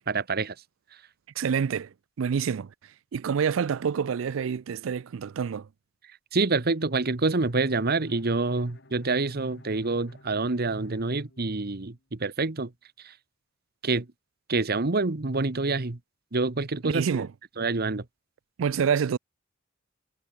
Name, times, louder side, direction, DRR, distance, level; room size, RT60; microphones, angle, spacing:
voice 1, 0.1-0.5 6.3-12.7 13.0-13.1 13.8-14.1 14.5-16.0 16.3-17.3 17.6-18.0, right 3 dB, 50° right, 1.2 m, -27 dB
voice 2, 1.4-1.9 2.2-2.7 3.1-5.7 16.8-17.3 18.6-19.2, right 7 dB, 75° right, 0.4 m, -27 dB
Bowed string instrument, 7.4-12.2, left 1 dB, 60° left, 6.6 m, -54 dB
head